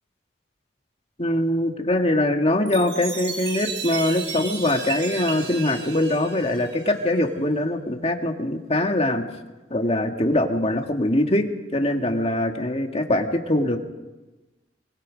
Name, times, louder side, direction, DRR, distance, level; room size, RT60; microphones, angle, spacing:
voice 1, 1.2-9.2 9.7-13.8, left 1 dB, 35° left, 4 dB, 1.9 m, -23 dB
Chime, 2.7-7.3, right 5 dB, 75° right, 4.4 m, -34 dB
25.0 x 24.5 x 5.2 m, 1.1 s
head